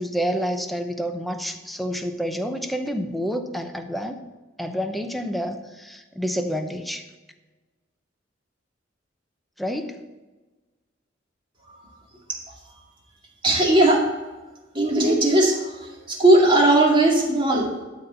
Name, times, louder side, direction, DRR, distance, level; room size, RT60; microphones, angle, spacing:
voice 1, 0.0-4.2 4.6-7.0 9.6-10.0, equal, ahead, 5 dB, 0.8 m, -28 dB
voice 2, 11.6-12.0 12.7-12.8 13.4-14.1 14.7-17.8, right 1 dB, 25° right, -1 dB, 2.2 m, -19 dB
12.5 x 4.3 x 8.1 m, 1.2 s
head